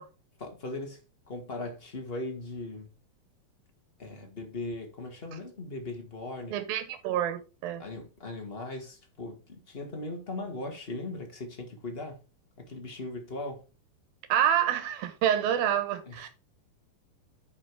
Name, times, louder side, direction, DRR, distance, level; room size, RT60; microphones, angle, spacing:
voice 1, 0.4-1.0 1.3-2.9 4.0-6.5 7.8-12.2 12.6-13.6 16.0-16.3, left 2 dB, 30° left, 1.2 m, -38 dB
voice 2, 6.5-7.8 14.3-16.3, right 10 dB, 80° right, 3.1 m, -27 dB
9.4 x 5.2 x 4.8 m
omnidirectional pair, 4.2 m